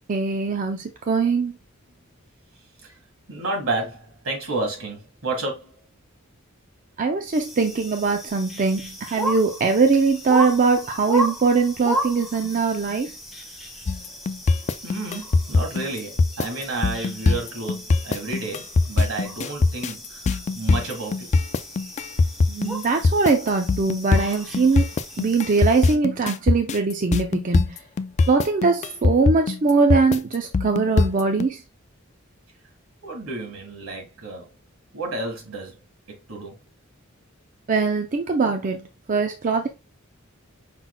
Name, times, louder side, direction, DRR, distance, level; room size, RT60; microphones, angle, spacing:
voice 1, 0.1-1.5 7.0-13.1 22.5-24.9 25.2-27.8 28.3-31.6 37.7-39.7, right 4 dB, 40° right, 0.5 m, -21 dB
voice 2, 3.3-5.8 14.8-21.3 33.0-34.5 34.9-35.8 36.1-36.6, right 2 dB, 75° right, 1.8 m, -31 dB
sound 1, 7.3-26.0, equal, ahead, 1.0 m, -35 dB
sound 2, 13.9-31.5, left 3 dB, 35° left, 0.3 m, -21 dB
5.8 x 3.8 x 2.2 m
head